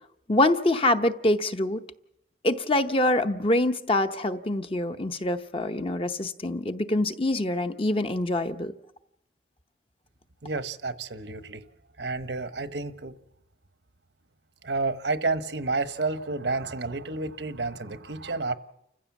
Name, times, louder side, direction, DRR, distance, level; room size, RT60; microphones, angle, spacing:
voice 1, 0.3-1.8 2.4-8.7, left 1 dB, 30° left, 0.8 m, -25 dB
voice 2, 10.4-11.6 12.0-13.1 14.6-18.6, right 3 dB, 85° right, 1.1 m, -30 dB
29.5 x 15.5 x 7.2 m
head